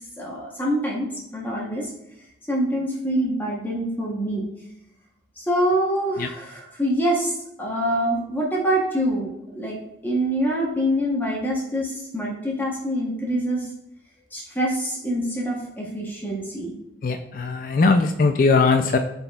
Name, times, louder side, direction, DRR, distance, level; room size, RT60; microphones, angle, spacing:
voice 1, 0.2-1.9 2.5-4.5 5.4-13.7 14.3-16.7 18.2-18.3, equal, 10° left, -4 dB, 0.9 m, -25 dB
voice 2, 17.0-19.0, left 4 dB, 50° left, 6 dB, 0.3 m, -19 dB
11.0 x 4.1 x 2.3 m, 0.84 s
head